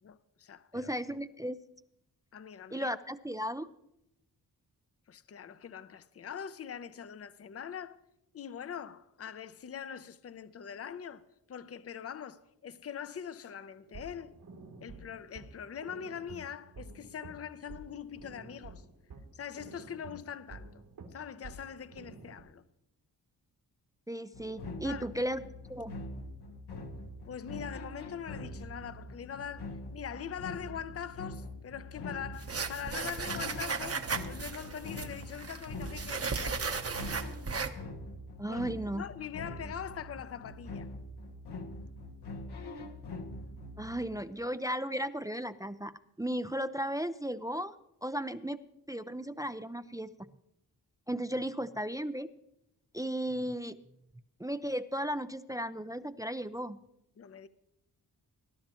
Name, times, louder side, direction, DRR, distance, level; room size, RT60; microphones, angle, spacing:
voice 1, 0.0-0.9 2.3-2.9 5.1-8.0 8.3-14.3 14.8-18.9 19.3-20.7 21.1-22.6 24.8-25.1 27.3-36.8 38.5-38.6 38.9-40.9 57.2-57.5, left 8 dB, 40° left, 0.6 m, -43 dB
voice 2, 0.7-1.6 2.7-3.7 24.1-25.4 25.7-25.9 38.4-39.0 43.8-47.8 48.0-48.6 48.9-50.3 51.1-52.3 52.9-53.8 54.4-56.8, equal, 10° right, 0.4 m, -35 dB
sound 1, 13.8-22.4, right 3 dB, 80° right, 3.0 m, -50 dB
sound 2, 24.3-44.2, left 2 dB, 90° left, 1.3 m, -44 dB
sound 3, 32.4-37.7, right 5 dB, 40° right, 1.0 m, -36 dB
20.0 x 11.5 x 3.0 m
cardioid pair, 85°, 39 cm